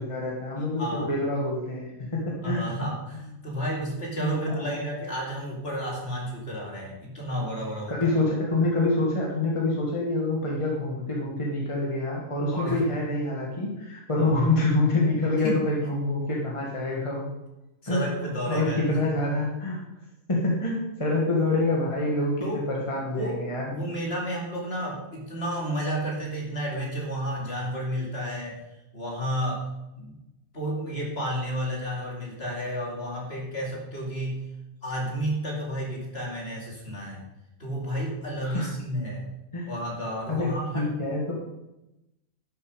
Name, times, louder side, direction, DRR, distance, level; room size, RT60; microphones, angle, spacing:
voice 1, 0.0-2.7 4.2-4.8 7.9-17.3 17.9-18.2 18.5-19.8 20.3-23.7 38.4-38.7 39.5-39.8 40.3-41.3, left 2 dB, 25° left, -3 dB, 1.9 m, -26 dB
voice 2, 2.4-8.1 12.5-12.8 14.2-14.3 15.4-15.6 17.8-18.9 22.4-22.7 23.1-23.4 23.7-28.6 28.9-29.7 30.0-30.2 30.5-34.4 34.8-37.3 37.6-39.3 39.7-40.9, equal, 45° left, -2 dB, 2.8 m, -31 dB
11.5 x 7.3 x 5.1 m, 0.93 s
omnidirectional pair, 1.4 m